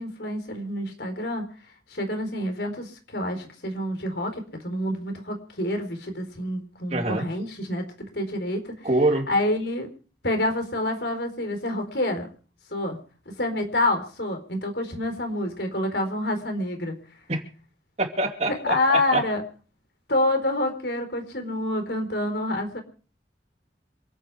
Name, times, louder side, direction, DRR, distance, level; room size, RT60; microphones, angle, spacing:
voice 1, 0.0-1.4 1.9-8.9 9.3-9.9 10.2-12.3 12.7-13.0 13.3-17.0 18.6-19.4 20.1-22.8, left 1 dB, 65° left, 5 dB, 4.2 m, -27 dB
voice 2, 6.9-7.2 8.8-9.3 17.3-17.4 18.0-19.2, right 2 dB, 35° right, 4 dB, 2.6 m, -24 dB
27.0 x 9.2 x 4.8 m, 0.40 s
head